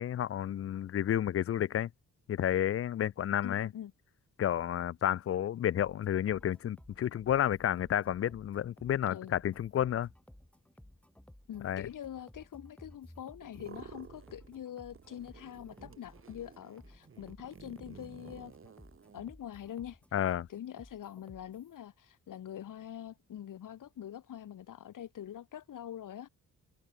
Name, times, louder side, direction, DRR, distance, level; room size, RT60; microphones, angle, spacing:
voice 1, 0.0-1.9 2.3-3.7 4.4-10.1 11.6-11.9 20.1-20.5, left 10 dB, 45° left, 0.5 m, -31 dB
voice 2, 3.4-3.9 9.1-9.4 11.5-18.5 19.1-20.0 20.5-26.3, left 10 dB, 75° left, 3.8 m, -44 dB
sound 1, 5.8-21.8, left 1 dB, 5° left, 4.5 m, -57 dB
sound 2, 13.4-14.6 14.9-19.2, right 6 dB, 40° right, 6.8 m, -53 dB
wide cardioid pair, 170°, 32 cm